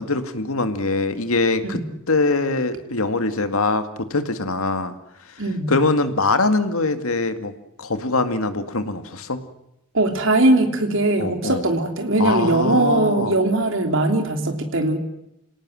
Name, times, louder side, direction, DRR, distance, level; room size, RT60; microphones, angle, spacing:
voice 1, 0.0-1.8 2.1-4.9 5.7-7.5 7.8-9.4 11.2-11.6 12.2-13.4, left 3 dB, 80° left, 9 dB, 2.1 m, -23 dB
voice 2, 5.4-5.7 9.9-15.0, right 2 dB, 60° right, 5 dB, 3.4 m, -20 dB
27.5 x 18.0 x 7.7 m, 0.82 s
head